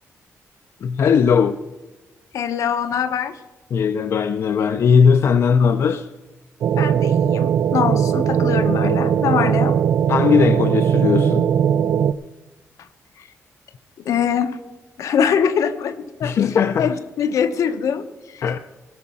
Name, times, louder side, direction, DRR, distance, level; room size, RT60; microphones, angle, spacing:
voice 1, 0.8-1.6 3.7-6.1 10.1-11.4 16.2-16.9 18.4-18.6, left 6 dB, 55° left, 0.5 m, -18 dB
voice 2, 2.3-3.4 6.8-9.8 12.8-12.9 13.2-13.3 14.0-14.6 15.0-18.6, left 7 dB, 75° left, 0.9 m, -23 dB
sound 1, 6.6-12.1, right 8 dB, 65° right, 0.4 m, -19 dB
16.5 x 6.3 x 7.0 m
wide cardioid pair, 145°, 6 cm